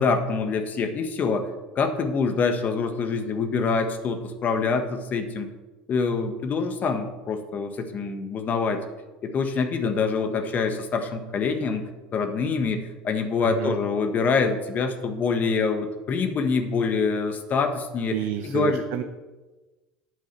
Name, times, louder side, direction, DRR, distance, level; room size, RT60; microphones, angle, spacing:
voice 1, 0.0-5.5 5.9-8.8 9.2-11.8 12.1-18.2 18.4-18.8, left 4 dB, 40° left, 7 dB, 1.4 m, -25 dB
voice 2, 13.4-13.8 18.1-19.0, right 10 dB, 60° right, 7 dB, 0.8 m, -29 dB
8.6 x 7.5 x 6.7 m, 1.2 s
hypercardioid pair, 75°, 4 cm